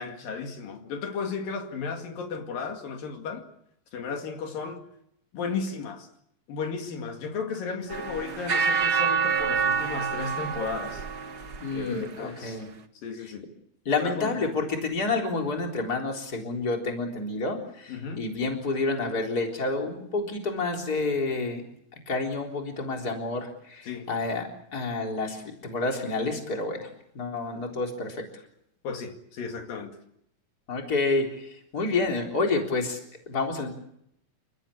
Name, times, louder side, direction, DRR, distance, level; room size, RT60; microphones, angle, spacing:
voice 1, 0.0-3.5 3.9-4.8 5.3-6.1 6.5-11.0 11.7-12.6 13.0-13.5 14.0-14.6 17.9-18.3 23.8-24.1 28.8-30.0, left 5 dB, 75° left, 3.9 m, -34 dB
sound 1, 7.9-12.2, right 6 dB, 55° right, 1.1 m, -27 dB
voice 2, 11.6-12.7 13.9-21.6 22.1-26.9 27.1-28.3 30.7-33.0 33.3-33.7, left 3 dB, 25° left, 4.2 m, -29 dB
29.5 x 15.0 x 8.6 m
omnidirectional pair, 4.0 m